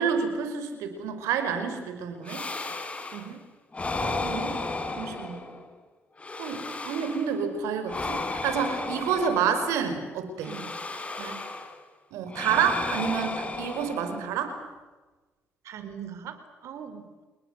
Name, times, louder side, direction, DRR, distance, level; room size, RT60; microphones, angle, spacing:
voice 1, 0.0-2.5 4.0-4.6 5.0-5.5 6.4-10.5 12.1-14.5, right 7 dB, 90° right, 8 dB, 5.3 m, -29 dB
sound 1, 2.3-3.3 3.7-5.7 6.2-7.4 7.9-9.9 10.4-11.8 12.3-14.4, left 3 dB, 25° left, 4.1 m, -34 dB
voice 2, 3.1-3.4 10.5-10.7 11.2-11.4 15.6-16.4 16.6-17.2, right 8 dB, 75° right, 9 dB, 4.6 m, -40 dB
30.0 x 21.0 x 8.2 m, 1.2 s
cardioid pair, 85°, 5 cm